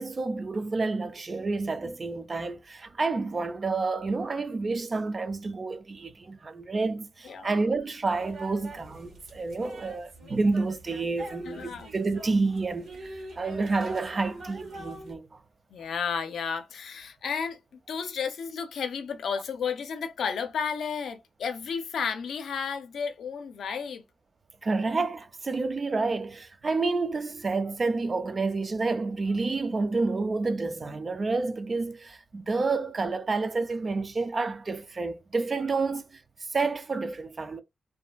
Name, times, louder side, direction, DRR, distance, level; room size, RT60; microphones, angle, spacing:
voice 1, 0.0-15.4 24.6-36.2 36.5-37.6, right 3 dB, 35° right, 0.4 m, -29 dB
voice 2, 7.2-7.7 11.4-11.9 15.7-24.0, left 6 dB, 85° left, 0.5 m, -33 dB
sound 1, 8.1-15.1, right 2 dB, 90° right, 1.4 m, -45 dB
2.6 x 2.5 x 2.3 m
wide cardioid pair, 115°, 0 cm